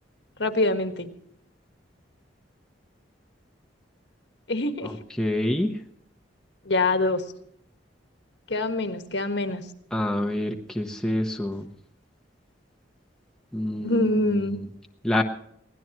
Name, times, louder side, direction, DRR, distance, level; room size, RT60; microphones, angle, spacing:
voice 1, 0.4-1.1 4.5-5.0 6.7-7.2 8.5-9.6 13.8-14.6, left 2 dB, 65° left, 7 dB, 1.6 m, -25 dB
voice 2, 5.2-5.7 9.9-11.7 13.5-14.4 15.0-15.2, left 1 dB, 5° left, 2 dB, 1.0 m, -26 dB
23.0 x 17.5 x 3.0 m, 0.70 s
head